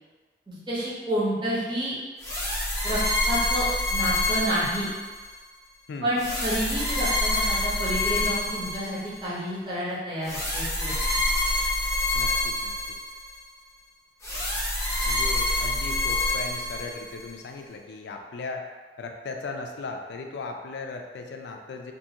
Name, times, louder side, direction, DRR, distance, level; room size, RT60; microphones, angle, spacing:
voice 1, 0.5-1.9 2.8-3.0 3.3-3.6 3.9-4.9 6.0-10.9, equal, 25° right, -8 dB, 0.7 m, -29 dB
sound 1, 2.2-5.4 6.2-9.3 10.2-13.4 14.2-17.3, left 1 dB, 15° left, 0.6 m, -27 dB
voice 2, 5.9-6.2 12.1-12.7 15.0-18.6 19.0-21.9, left 3 dB, 75° left, 3 dB, 0.3 m, -37 dB
2.6 x 2.4 x 2.7 m, 1.4 s
head